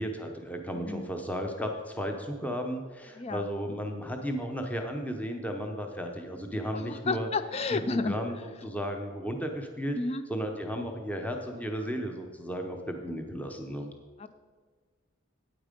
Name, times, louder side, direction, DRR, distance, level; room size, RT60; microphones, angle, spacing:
voice 1, 0.0-7.3 7.7-8.3 8.6-10.0 10.3-13.9, equal, 5° left, 4 dB, 0.8 m, -34 dB
voice 2, 0.7-1.1 3.2-3.5 6.7-8.2 9.9-10.2 14.2-14.3, left 3 dB, 30° left, 12 dB, 0.4 m, -31 dB
9.0 x 8.8 x 5.1 m, 1.5 s
head